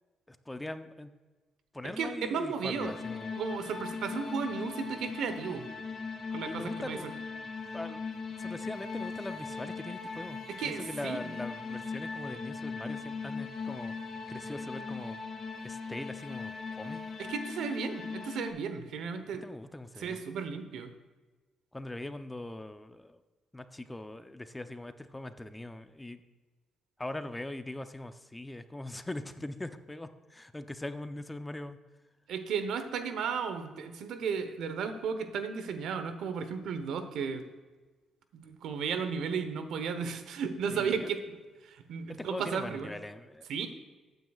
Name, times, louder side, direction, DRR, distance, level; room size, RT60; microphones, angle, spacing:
voice 1, 0.3-1.1 1.7-3.3 6.4-7.2 7.7-8.0 8.4-13.9 14.3-15.2 15.6-17.0 19.4-20.2 21.7-23.2 23.5-26.2 27.0-31.8 40.7-41.1 42.2-43.5, left 1 dB, 10° left, 10 dB, 0.6 m, -41 dB
voice 2, 2.0-2.9 3.3-5.6 6.3-7.0 10.6-11.3 17.2-19.4 20.0-20.9 32.3-37.4 38.3-41.4 41.6-42.9 43.5-43.7, right 6 dB, 75° right, 9 dB, 1.0 m, -34 dB
sound 1, 2.8-18.5, left 4 dB, 45° left, 2.2 m, -39 dB
Wind instrument woodwind instrument, 8.4-12.0, left 8 dB, 80° left, 1.9 m, -57 dB
14.0 x 9.2 x 2.4 m, 1.3 s
cardioid pair, 90°, 0 cm